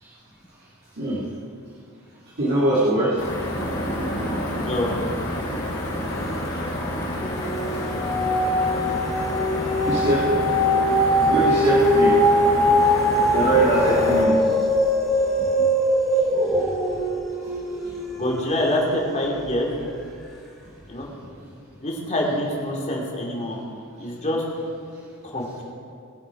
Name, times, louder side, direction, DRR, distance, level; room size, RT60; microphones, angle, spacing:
voice 1, 2.4-5.6 5.8-7.3 8.0-8.2 8.8-8.9 9.6-10.6 11.2-12.2 12.8-12.9 13.3-14.4 16.5-16.6, right 1 dB, 50° right, -8 dB, 2.4 m, -25 dB
sound 1, 3.2-14.2, left 1 dB, 55° left, 3.6 m, -29 dB
sound 2, 6.1-6.6 7.0-19.5 20.0-20.1, equal, ahead, 2.4 m, -22 dB
voice 2, 18.2-19.7 20.9-21.1 21.8-23.6 24.0-24.4 25.3-25.6, left 1 dB, 35° left, -2 dB, 2.7 m, -25 dB
21.0 x 8.2 x 4.8 m, 2.5 s
head